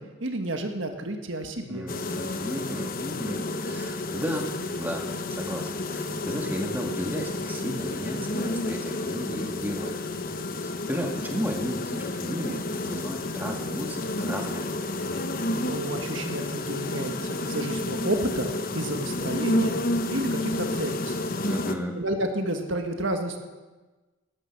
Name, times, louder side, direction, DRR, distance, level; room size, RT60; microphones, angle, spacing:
voice 1, 0.0-1.9 15.5-19.8 20.1-21.2 21.9-23.4, right 1 dB, 60° right, 5 dB, 1.6 m, -31 dB
voice 2, 1.7-4.5 4.8-10.1 10.6-14.9 21.4-22.0, equal, 10° right, 1 dB, 1.8 m, -34 dB
sound 1, 1.9-21.8, left 2 dB, 40° left, 0.9 m, -30 dB
18.5 x 13.0 x 6.0 m, 1.2 s
head